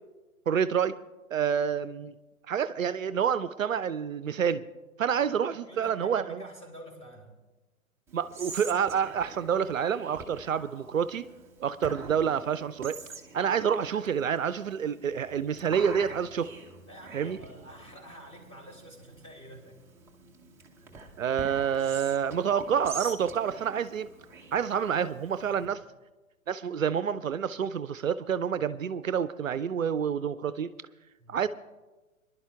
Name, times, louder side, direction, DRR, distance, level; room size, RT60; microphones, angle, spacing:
voice 1, 0.5-1.0 1.3-2.1 2.5-4.7 5.0-6.5 8.1-11.3 11.6-13.0 13.3-16.5 17.1-17.4 21.2-24.1 24.5-25.8 26.5-30.7 31.3-31.5, right 7 dB, 70° right, 0.5 m, -28 dB
voice 2, 5.6-7.4 16.9-19.8 25.5-25.7 31.2-31.4, equal, 15° left, 2.9 m, -48 dB
Whispering, 8.1-25.7, right 4 dB, 5° right, 0.6 m, -46 dB
26.5 x 11.0 x 2.4 m
figure-of-eight pair, 110°, 41 cm